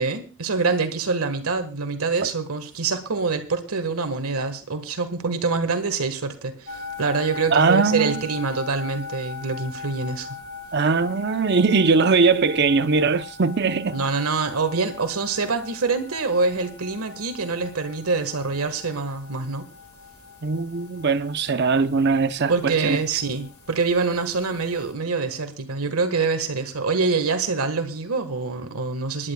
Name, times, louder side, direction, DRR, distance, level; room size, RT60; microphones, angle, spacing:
voice 1, 0.0-10.3 13.9-19.7 22.5-29.3, right 4 dB, 85° right, 1.5 m, -25 dB
sound 1, 6.7-24.9, left 4 dB, 85° left, 2.3 m, -41 dB
voice 2, 7.5-8.2 10.7-14.0 20.4-23.0, right 4 dB, 50° right, 0.6 m, -20 dB
27.5 x 11.0 x 2.3 m
head